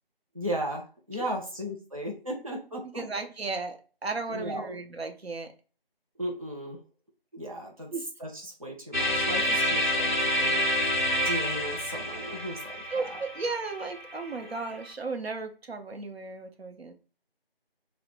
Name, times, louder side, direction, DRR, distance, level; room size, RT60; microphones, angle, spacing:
voice 1, 0.3-3.0 4.3-4.7 6.2-6.8 7.3-7.9 8.2-13.2 14.4-14.7, equal, 35° right, -1 dB, 0.5 m, -36 dB
voice 2, 2.9-5.5 7.9-8.1 12.9-16.9, right 3 dB, 90° right, 5 dB, 0.7 m, -35 dB
sound 1, 8.9-14.9, equal, 50° left, 0.5 m, -28 dB
2.5 x 2.0 x 3.1 m, 0.36 s
figure-of-eight pair, 165°, 30 cm